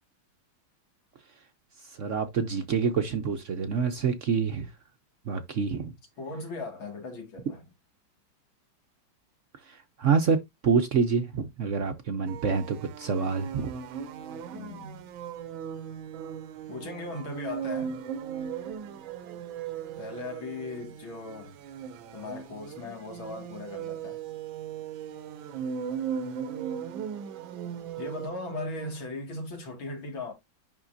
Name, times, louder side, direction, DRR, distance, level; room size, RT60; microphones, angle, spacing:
voice 1, 1.9-4.7 5.3-5.9 9.7-13.7, right 5 dB, 60° right, 0.8 m, -27 dB
voice 2, 6.2-7.6 14.5-15.1 16.7-18.0 20.0-21.6 22.1-24.2 28.0-30.3, left 2 dB, 85° left, 3.0 m, -38 dB
sound 1, 12.3-28.9, right 8 dB, 80° right, 1.5 m, -38 dB
11.0 x 3.7 x 2.6 m
omnidirectional pair, 2.1 m